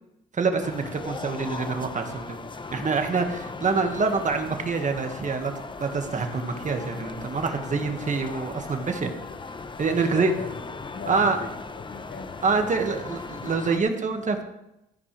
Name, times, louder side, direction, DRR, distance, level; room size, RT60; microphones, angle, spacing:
voice 1, 0.3-2.4 2.7-5.5 5.8-9.1 9.8-10.3 11.1-11.4 12.4-14.4, right 4 dB, 40° right, 5 dB, 1.6 m, -26 dB
sound 1, 0.6-13.8, left 4 dB, 25° left, 0.7 m, -38 dB
voice 2, 8.9-9.3 9.9-10.6 10.9-13.0, left 5 dB, 60° left, 6 dB, 1.6 m, -41 dB
14.5 x 9.5 x 3.3 m, 0.86 s
cardioid pair, 90°, 20 cm